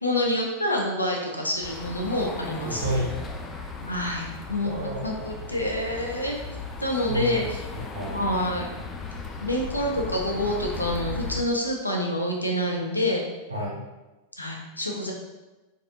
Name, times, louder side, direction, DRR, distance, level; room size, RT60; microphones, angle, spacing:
voice 1, 0.0-3.1 3.8-4.7 5.0-6.4 6.8-7.4 8.1-8.8 9.4-13.2 14.4-15.1, left 1 dB, 85° left, 0 dB, 0.6 m, -27 dB
sound 1, 1.6-11.4, left 4 dB, 20° left, 0.4 m, -36 dB
voice 2, 2.6-3.1 4.6-5.4 6.9-8.2 13.5-13.8, right 1 dB, 75° right, -4 dB, 1.0 m, -31 dB
4.0 x 2.6 x 2.9 m, 1.1 s
figure-of-eight pair, 90°, 0 cm